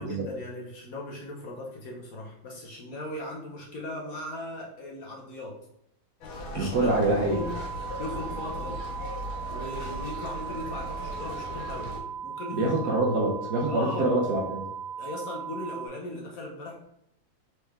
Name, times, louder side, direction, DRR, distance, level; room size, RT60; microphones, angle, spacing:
voice 1, 0.0-5.6 6.5-8.8 9.5-11.9 12.2-12.6 13.6-14.1 15.0-16.8, left 1 dB, 55° left, -1 dB, 1.1 m, -38 dB
sound 1, 6.2-12.0, left 1 dB, 90° left, 1.7 m, -38 dB
voice 2, 6.5-7.4 12.5-14.6, right 2 dB, 60° right, -2 dB, 1.3 m, -25 dB
sound 2, 7.3-15.9, right 7 dB, 80° right, 1.5 m, -38 dB
4.4 x 3.4 x 3.5 m, 0.75 s
omnidirectional pair, 2.1 m